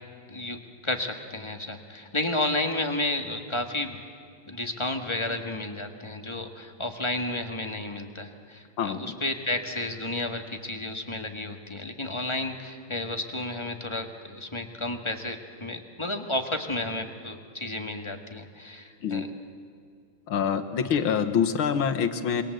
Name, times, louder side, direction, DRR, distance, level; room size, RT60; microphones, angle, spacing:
voice 1, 0.3-4.0 4.5-19.3 20.8-20.9, left 2 dB, 15° left, 5 dB, 1.5 m, -32 dB
voice 2, 20.3-22.4, left 7 dB, 90° left, 7 dB, 2.1 m, -25 dB
27.0 x 22.5 x 7.9 m, 2.3 s
omnidirectional pair, 2.2 m